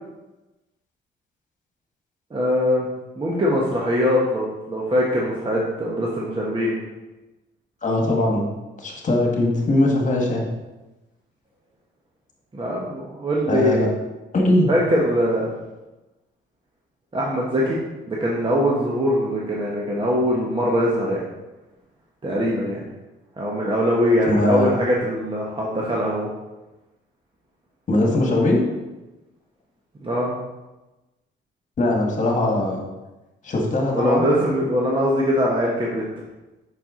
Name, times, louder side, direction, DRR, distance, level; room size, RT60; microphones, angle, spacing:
voice 1, 2.3-2.9 3.2-6.7 12.5-13.9 14.7-15.5 17.1-17.8 18.1-21.2 22.2-22.8 23.4-26.3 30.0-30.3 33.9-36.0, equal, 25° right, -4 dB, 1.0 m, -22 dB
voice 2, 7.8-8.5 8.8-10.5 13.5-13.9 14.3-14.7 24.2-24.8 27.9-28.6 31.8-32.8 33.4-34.3, left 1 dB, 40° left, 0 dB, 1.6 m, -20 dB
5.9 x 4.4 x 3.7 m, 1.1 s
cardioid pair, 90°, 20 cm